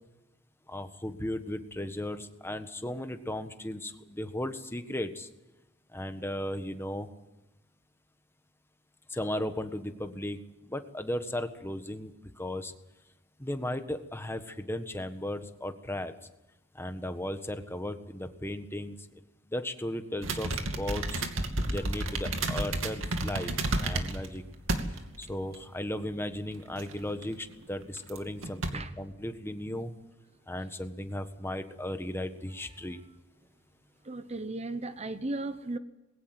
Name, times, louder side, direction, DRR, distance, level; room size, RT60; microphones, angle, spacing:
voice 1, 0.7-5.3 5.9-7.1 9.1-10.4 10.7-12.1 12.4-12.7 13.4-16.1 16.8-19.0 19.5-20.5 20.8-21.2 21.7-23.5 23.8-24.4 25.2-29.9 30.5-33.0, left 1 dB, 10° left, 8 dB, 1.4 m, -36 dB
sound 1, 20.2-24.3 24.7-25.2 25.5-25.6 26.8-27.2 28.0-28.2 28.4-28.7, right 2 dB, 85° right, 2.5 m, -31 dB
voice 2, 34.0-35.8, right 2 dB, 35° right, 12 dB, 0.9 m, -35 dB
21.5 x 17.5 x 7.8 m, 1.0 s
head